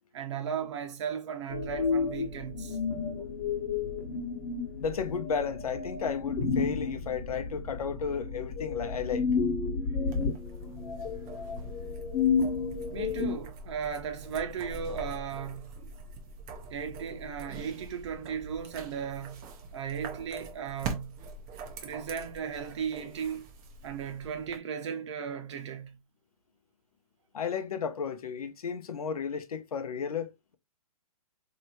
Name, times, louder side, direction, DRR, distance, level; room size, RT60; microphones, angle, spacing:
voice 1, 0.1-2.8 12.9-15.8 16.7-21.2 21.8-23.5 23.8-26.0, right 7 dB, 50° right, 0.8 m, -36 dB
sound 1, 1.5-13.3, left 5 dB, 40° left, 1.1 m, -31 dB
voice 2, 4.8-9.3 27.3-30.6, left 6 dB, 85° left, 0.7 m, -33 dB
sound 2, 10.1-24.6, right 3 dB, 20° right, 0.4 m, -44 dB
3.3 x 2.8 x 2.7 m
hypercardioid pair, 155°, 18 cm